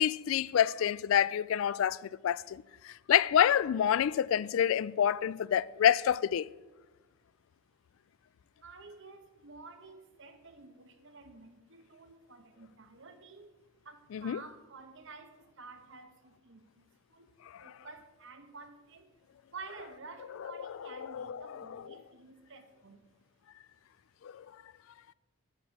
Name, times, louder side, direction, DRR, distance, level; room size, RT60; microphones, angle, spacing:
voice 1, 0.0-6.5 14.1-14.4 17.5-17.7 20.6-21.8 24.2-24.5, left 9 dB, 65° left, 0.3 m, -28 dB
voice 2, 8.6-17.3 17.6-19.2 19.5-23.1, right 4 dB, 60° right, 1.2 m, -51 dB
11.5 x 6.7 x 6.5 m
head